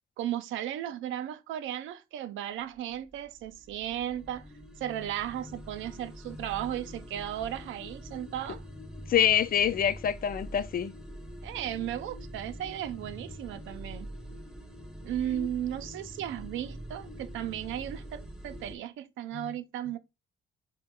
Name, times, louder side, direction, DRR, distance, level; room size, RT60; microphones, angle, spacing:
voice 1, 0.2-4.5 4.8-8.6 11.4-14.1 15.0-20.0, right 11 dB, 80° right, 0.5 m, -35 dB
sound 1, 2.8-18.8, equal, 5° right, 0.6 m, -45 dB
voice 2, 9.1-10.9 15.3-15.5 19.3-19.5, left 9 dB, 45° left, 0.4 m, -26 dB
3.9 x 2.2 x 3.6 m
cardioid pair, 90°, 20 cm